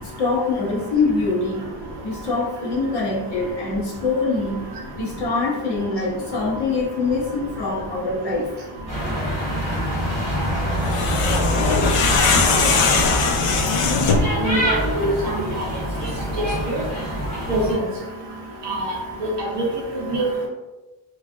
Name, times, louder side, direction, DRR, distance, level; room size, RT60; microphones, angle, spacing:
voice 1, 0.0-1.7 2.0-8.5 14.5-14.6, left 3 dB, 55° left, -6 dB, 1.0 m, -24 dB
sound 1, 8.9-17.7, equal, 15° left, 1.3 m, -25 dB
sound 2, 10.8-14.4, left 4 dB, 90° left, 0.6 m, -20 dB
voice 2, 14.4-15.1 16.7-16.8 17.5-17.8 18.7-18.8 19.4-19.7 20.1-20.5, right 1 dB, 55° right, -2 dB, 0.8 m, -23 dB
3.1 x 2.4 x 2.5 m, 1.1 s
wide cardioid pair, 175°, 50 cm